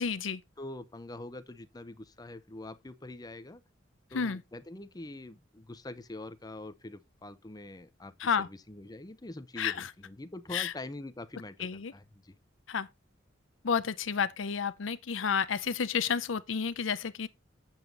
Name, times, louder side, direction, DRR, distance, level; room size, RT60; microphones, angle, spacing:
voice 1, 0.0-0.4 4.1-4.4 8.2-8.5 9.6-9.9 10.5-10.7 11.6-11.9 12.7-12.9 13.6-17.3, left 6 dB, 85° left, 0.6 m, -31 dB
voice 2, 0.6-3.6 4.1-8.1 8.4-12.4, left 2 dB, 20° left, 0.7 m, -44 dB
7.7 x 7.3 x 3.9 m
head